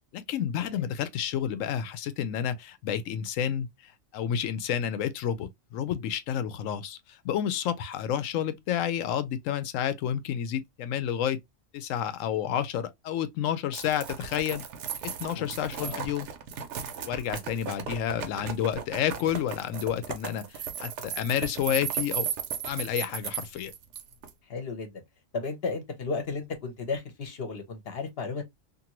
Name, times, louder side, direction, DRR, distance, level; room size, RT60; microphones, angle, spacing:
voice 1, 0.1-11.4 11.7-14.6 15.0-16.3 17.1-22.3 22.6-23.7, left 9 dB, 85° left, 1.0 m, -30 dB
sound 1, 13.7-24.3, right 8 dB, 70° right, 0.9 m, -36 dB
voice 2, 15.8-16.1 17.3-17.4 24.5-25.0 25.3-28.4, left 4 dB, 55° left, 0.9 m, -34 dB
2.6 x 2.6 x 2.8 m
omnidirectional pair, 1.3 m